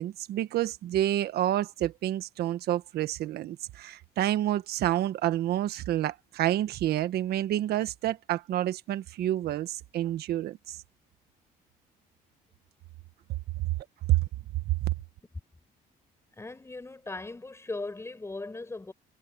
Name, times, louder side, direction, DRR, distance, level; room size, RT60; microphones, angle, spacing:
voice 1, 0.0-10.8 13.6-13.7 14.1-14.3, right 13 dB, 70° right, 1.4 m, -28 dB
voice 2, 16.3-18.9, left 3 dB, 15° left, 7.3 m, -38 dB
cardioid pair, 110°, 17 cm